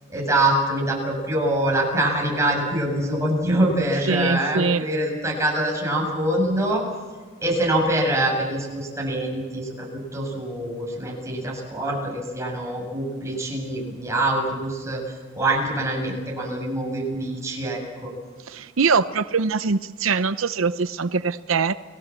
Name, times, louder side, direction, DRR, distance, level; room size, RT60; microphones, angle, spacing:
voice 1, 0.1-6.8 7.4-9.9 10.1-18.1, right 1 dB, 15° right, -1 dB, 7.7 m, -24 dB
voice 2, 4.1-4.8 18.5-21.7, right 5 dB, 85° right, 12 dB, 0.7 m, -22 dB
29.5 x 20.0 x 7.5 m, 1.5 s
head